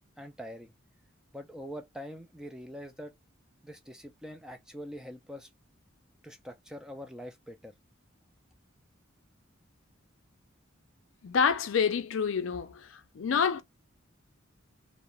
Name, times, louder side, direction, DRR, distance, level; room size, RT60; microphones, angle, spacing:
voice 1, 0.2-0.7 1.3-3.1 3.6-5.5 6.2-7.7, equal, 5° right, 0.3 m, -44 dB
voice 2, 11.2-12.9 13.1-13.6, left 6 dB, 70° left, 0.4 m, -27 dB
2.4 x 2.0 x 3.0 m
head